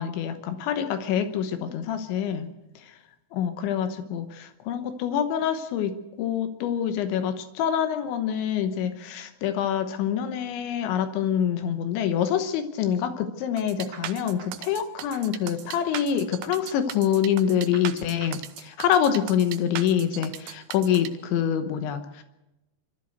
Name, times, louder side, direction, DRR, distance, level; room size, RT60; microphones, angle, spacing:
voice 1, 0.0-2.5 3.3-5.9 6.2-22.2, left 9 dB, 75° left, 9 dB, 3.3 m, -26 dB
sound 1, 13.6-21.1, right 12 dB, 90° right, 3.4 m, -38 dB
26.0 x 13.0 x 7.9 m, 0.95 s
omnidirectional pair, 5.4 m